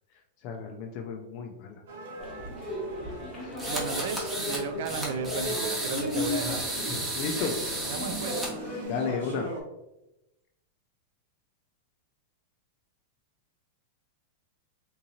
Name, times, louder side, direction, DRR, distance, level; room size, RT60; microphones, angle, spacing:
voice 1, 0.4-1.8 3.4-3.5 7.1-7.5 8.9-9.5, left 5 dB, 40° left, 2 dB, 0.4 m, -33 dB
sound 1, 1.9-9.6, right 2 dB, 80° right, 0.9 m, -42 dB
sound 2, 2.2-8.8, left 1 dB, 10° left, 1.0 m, -36 dB
sound 3, 3.6-4.6 4.9-8.5, right 1 dB, 10° right, 0.8 m, -33 dB
voice 2, 3.7-6.7 7.4-7.6 7.9-8.4, right 5 dB, 60° right, 8 dB, 0.4 m, -34 dB
3.6 x 2.7 x 2.8 m, 0.93 s
supercardioid pair, 160°, 0 cm